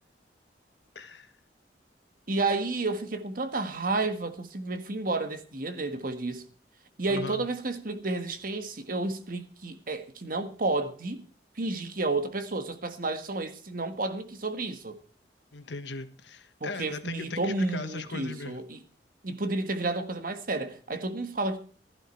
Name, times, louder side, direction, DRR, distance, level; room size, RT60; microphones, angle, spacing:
voice 1, 0.9-1.3 7.1-7.4 15.5-18.6, left 3 dB, 85° left, 1.5 m, -38 dB
voice 2, 2.3-6.4 7.0-11.2 11.6-15.0 16.6-18.8 19.2-21.6, right 2 dB, 55° right, 1.6 m, -31 dB
15.5 x 12.0 x 4.5 m
head